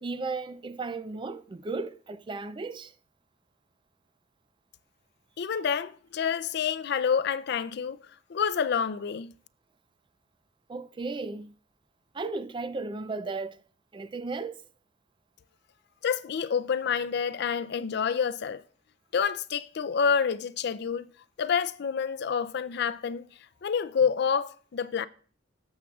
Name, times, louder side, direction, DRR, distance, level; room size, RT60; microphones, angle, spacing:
voice 1, 0.0-2.9 10.7-11.5 12.1-13.6 13.9-14.6, right 3 dB, 25° right, 0.4 m, -35 dB
voice 2, 5.4-8.0 8.3-9.3 16.0-18.6 19.1-21.1 21.4-23.2 23.6-25.1, left 6 dB, 60° left, 0.4 m, -28 dB
17.5 x 7.3 x 2.3 m
head